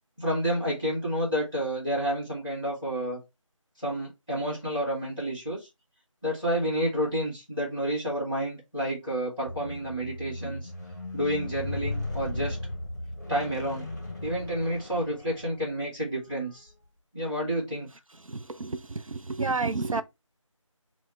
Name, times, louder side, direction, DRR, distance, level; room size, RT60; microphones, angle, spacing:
voice 1, 0.2-3.2 3.8-5.6 6.2-10.7 11.1-12.6 13.3-13.8 14.2-16.7 17.1-17.9, equal, 5° right, 1.4 m, -30 dB
Squeak, 9.5-15.8 16.6-16.7, left 2 dB, 35° left, 0.7 m, -37 dB
voice 2, 18.3-20.0, right 3 dB, 80° right, 0.5 m, -30 dB
4.6 x 2.1 x 3.3 m
figure-of-eight pair, 165°, 17 cm